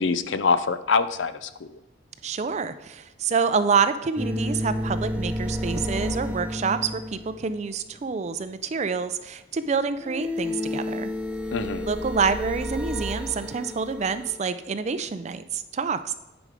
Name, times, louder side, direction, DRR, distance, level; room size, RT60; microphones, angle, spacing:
voice 1, 0.0-1.8 11.5-11.9, left 5 dB, 75° left, 13 dB, 0.5 m, -25 dB
voice 2, 2.2-11.1 11.9-16.1, right 5 dB, 35° right, 12 dB, 0.4 m, -27 dB
sound 1, 4.1-7.7 10.0-14.4, left 1 dB, 5° right, 0.7 m, -31 dB
9.9 x 5.2 x 4.9 m, 1.0 s
head